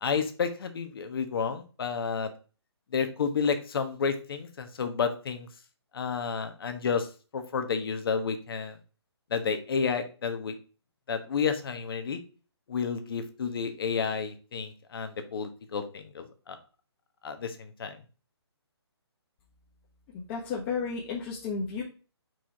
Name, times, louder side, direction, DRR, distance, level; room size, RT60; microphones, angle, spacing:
voice 1, 0.0-2.3 2.9-5.5 5.9-8.8 9.3-10.6 11.1-12.2 12.7-16.6 17.2-18.0, left 6 dB, 55° left, 8 dB, 1.2 m, -31 dB
voice 2, 20.3-21.8, left 5 dB, 25° left, -4 dB, 1.3 m, -32 dB
4.8 x 4.4 x 4.7 m, 0.36 s
hypercardioid pair, 155°, 14 cm